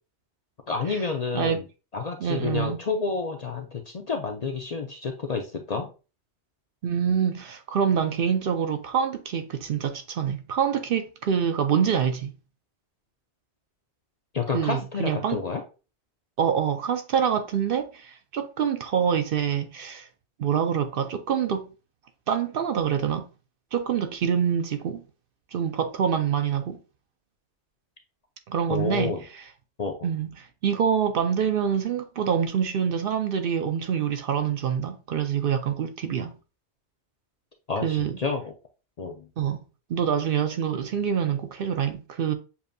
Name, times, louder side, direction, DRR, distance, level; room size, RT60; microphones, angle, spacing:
voice 1, 0.7-1.6 1.9-5.9 14.3-15.6 28.7-29.2 29.8-30.1 37.7-38.5 39.0-39.3, left 4 dB, 50° left, 0.5 m, -29 dB
voice 2, 2.2-2.8 6.8-12.3 14.5-15.4 16.4-20.1 20.4-21.7 22.3-23.2 23.7-25.0 25.5-26.8 28.5-29.4 30.0-30.3 30.6-36.3 37.8-38.2 39.4-39.6 39.9-42.3, right 8 dB, 60° right, 0.7 m, -26 dB
7.0 x 2.5 x 2.6 m
omnidirectional pair, 1.1 m